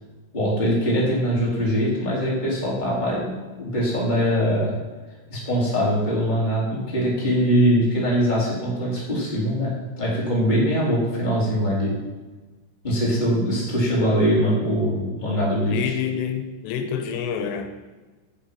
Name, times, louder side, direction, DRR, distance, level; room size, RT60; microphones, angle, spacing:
voice 1, 0.3-4.7 5.3-11.9 12.8-15.9, equal, 10° left, 2.9 m, -22 dB
voice 2, 15.6-17.7, left 7 dB, 85° left, 3.3 m, -27 dB
13.0 x 7.4 x 5.6 m
omnidirectional pair, 5.9 m